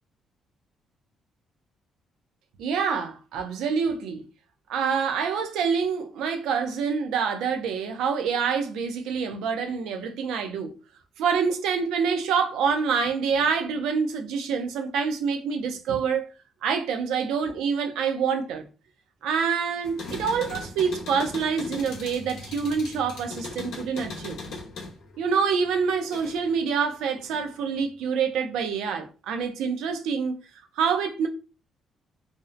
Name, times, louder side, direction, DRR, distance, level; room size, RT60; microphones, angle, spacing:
voice 1, 2.6-4.3 4.7-10.8 11.2-16.3 16.6-18.6 19.2-24.4 25.2-30.4 30.8-31.3, right 6 dB, 90° right, 0.4 m, -26 dB
sound 1, 19.8-26.6 26.9-27.8, left 3 dB, 75° left, 0.7 m, -39 dB
2.5 x 2.0 x 2.5 m
cardioid pair, 90°, 0 cm